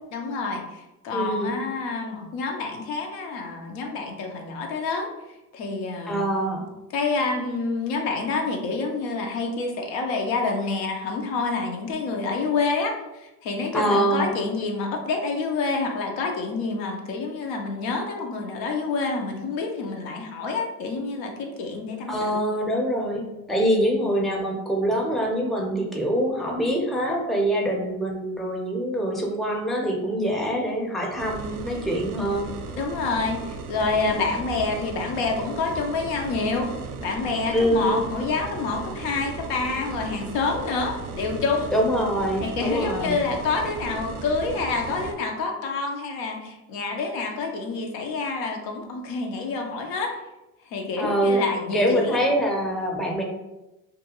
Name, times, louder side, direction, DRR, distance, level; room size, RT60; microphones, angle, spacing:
voice 1, 0.1-5.1 5.5-6.3 6.9-22.4 23.7-23.9 32.8-36.7 37.0-41.7 42.4-50.2 50.7-52.2, left 4 dB, 85° left, 2 dB, 0.6 m, -28 dB
voice 2, 1.1-1.5 6.1-6.6 13.7-14.3 22.1-32.5 34.0-34.3 37.5-38.0 41.7-43.2 51.0-51.4 51.7-53.2, equal, ahead, 0 dB, 0.5 m, -24 dB
sound 1, 31.2-45.1, right 4 dB, 50° right, 0.5 m, -36 dB
2.4 x 2.2 x 2.9 m, 0.98 s
supercardioid pair, 75°, 43 cm